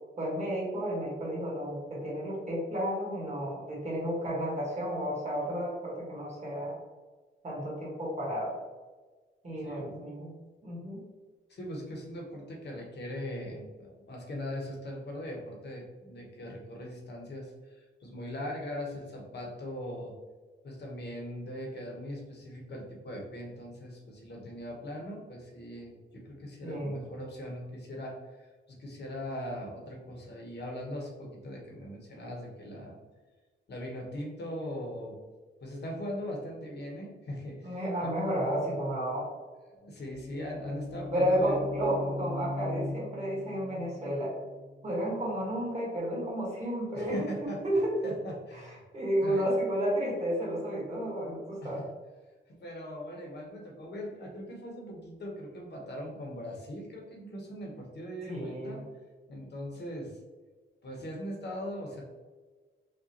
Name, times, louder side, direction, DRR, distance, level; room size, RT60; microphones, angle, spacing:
voice 1, 0.2-6.8 7.4-8.5 9.4-10.3 10.6-11.0 26.6-27.0 37.6-39.3 41.1-44.4 44.8-48.1 48.5-51.8 58.3-58.8, equal, 35° right, -5 dB, 1.4 m, -32 dB
voice 2, 9.6-10.0 11.5-20.2 20.6-33.0 33.7-35.2 35.6-38.1 39.7-41.6 46.9-47.6 48.0-48.8 49.2-49.5 51.6-51.9 52.5-58.8 59.3-60.2 60.8-62.0, equal, 55° left, -1 dB, 1.0 m, -40 dB
sound 1, 39.8-45.7, left 2 dB, 20° left, 0.6 m, -40 dB
5.1 x 2.4 x 2.9 m, 1.3 s
wide cardioid pair, 175°, 21 cm